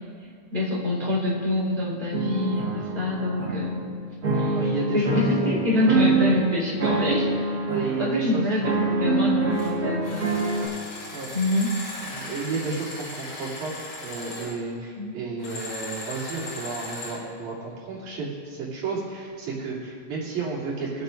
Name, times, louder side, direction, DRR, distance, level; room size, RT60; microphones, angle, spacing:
voice 1, 0.5-3.9 4.3-4.6 4.9-7.4 8.0-10.3 11.3-11.7 15.0-15.1, left 1 dB, 15° right, -6 dB, 3.7 m, -25 dB
sound 1, 2.1-3.9 4.2-6.5 6.8-8.0 8.6-10.7, right 3 dB, 35° right, 1.7 m, -25 dB
voice 2, 4.5-5.6 7.7-8.4 11.1-11.3 12.0-13.7 14.0-21.0, right 4 dB, 75° right, -7 dB, 4.4 m, -32 dB
sound 2, 9.5-9.7 10.0-14.5 15.4-17.2, left 2 dB, 70° left, 4.6 m, -38 dB
25.0 x 8.6 x 2.6 m, 2.2 s
omnidirectional pair, 3.5 m